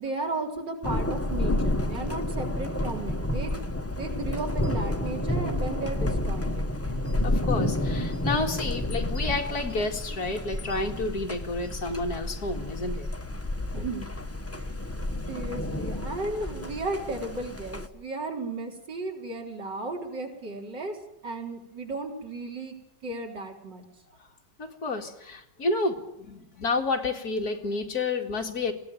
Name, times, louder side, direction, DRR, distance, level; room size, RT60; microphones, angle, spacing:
voice 1, 0.0-3.6 3.9-6.6 13.7-14.1 14.5-14.7 15.3-21.0 21.2-22.8 23.0-23.9, right 2 dB, 80° right, 1 dB, 4.7 m, -35 dB
Thunder, 0.8-17.9, left 1 dB, 10° left, 0.8 m, -30 dB
voice 2, 7.2-13.1 24.6-28.7, left 3 dB, 55° left, 4 dB, 2.6 m, -30 dB
21.0 x 17.5 x 9.2 m, 0.83 s
omnidirectional pair, 1.9 m